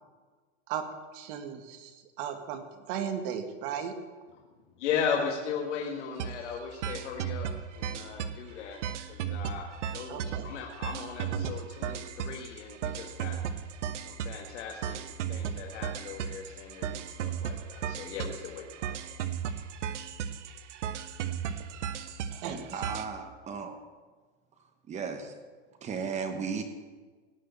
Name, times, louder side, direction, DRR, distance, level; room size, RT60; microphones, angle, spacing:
voice 1, 1.1-4.0 10.1-10.5 22.3-22.6, right 8 dB, 50° right, 7 dB, 1.8 m, -36 dB
voice 2, 4.8-9.7 9.9-13.4 14.0-15.0 15.3-19.0, left 7 dB, 80° left, 1 dB, 1.9 m, -37 dB
sound 1, 6.2-6.4 6.7-8.4 8.7-23.1, right 8 dB, 90° right, 1.1 m, -35 dB
voice 3, 22.4-23.8 24.9-25.3 25.8-26.6, right 5 dB, 20° right, 7 dB, 1.3 m, -35 dB
17.5 x 6.5 x 8.3 m, 1.4 s
supercardioid pair, 155°, 35 cm